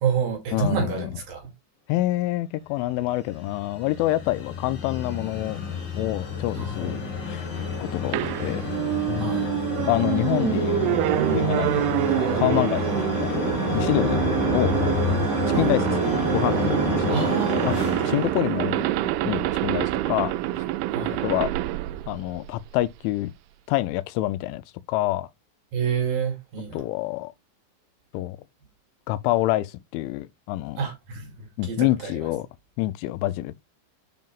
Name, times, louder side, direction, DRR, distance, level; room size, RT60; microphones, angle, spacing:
voice 1, 0.0-1.5 6.6-7.0 9.2-9.5 15.5-15.7 17.1-17.7 20.9-21.2 25.7-26.8 30.8-32.2, right 6 dB, 55° right, 3.8 m, -28 dB
voice 2, 0.5-1.1 1.9-5.6 6.0-7.0 7.3-7.5 7.8-8.6 9.1-9.5 9.9-11.0 11.3-12.8 13.2-14.2 14.5-14.7 15.5-17.3 17.6-17.8 18.0-20.6 21.1-21.5 22.1-23.3 23.7-24.6 24.9-25.3 26.7-27.3 28.1-28.4 29.1-30.8 31.6-32.5 32.8-33.6, left 16 dB, 85° left, 2.9 m, -27 dB
sound 1, 3.0-19.2, left 5 dB, 35° left, 2.4 m, -29 dB
sound 2, 8.1-22.9, right 15 dB, 85° right, 2.9 m, -26 dB
10.5 x 5.6 x 2.4 m
omnidirectional pair, 5.5 m